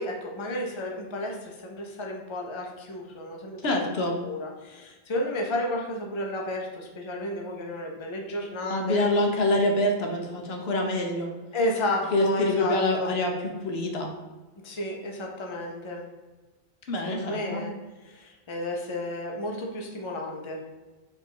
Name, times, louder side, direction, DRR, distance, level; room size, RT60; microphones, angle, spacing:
voice 1, 0.0-3.9 4.2-9.0 11.5-13.1 14.6-16.0 17.0-17.7 18.0-20.6, left 1 dB, 30° left, 0 dB, 0.7 m, -32 dB
voice 2, 3.6-4.2 8.7-11.3 12.1-14.1 16.9-17.6, left 1 dB, 75° left, 2 dB, 1.0 m, -26 dB
4.4 x 2.6 x 4.6 m, 1.2 s
omnidirectional pair, 1.1 m